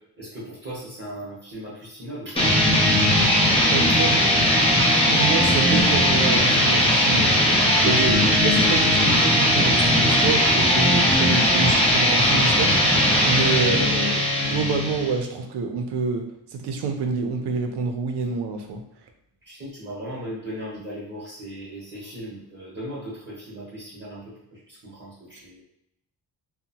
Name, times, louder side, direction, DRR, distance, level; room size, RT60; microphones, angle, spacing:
voice 1, 0.2-2.5 19.5-25.6, equal, 30° right, -7 dB, 0.8 m, -37 dB
sound 1, 2.4-15.2, left 1 dB, 15° left, 0.5 m, -19 dB
voice 2, 3.7-4.2 5.1-13.0 13.2-18.8, right 4 dB, 90° right, 5 dB, 0.6 m, -28 dB
2.7 x 2.1 x 2.7 m, 0.77 s
wide cardioid pair, 140°, 40 cm